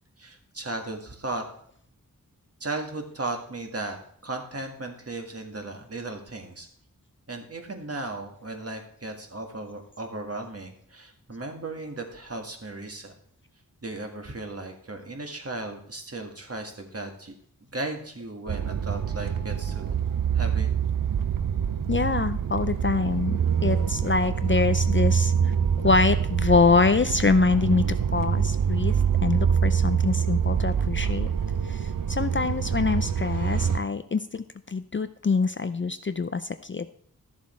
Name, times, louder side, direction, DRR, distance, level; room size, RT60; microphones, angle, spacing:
voice 1, 0.2-1.4 2.6-4.0 4.2-6.7 7.3-13.1 13.8-17.3 17.7-20.0 20.3-20.7, right 2 dB, 40° right, 3 dB, 1.8 m, -36 dB
sound 1, 18.5-33.8, right 7 dB, 70° right, 0.6 m, -25 dB
voice 2, 21.9-25.5 25.8-28.9 29.2-31.3 31.6-36.9, left 4 dB, 35° left, 11 dB, 0.4 m, -25 dB
12.5 x 7.2 x 4.4 m, 0.64 s
wide cardioid pair, 70°, 35 cm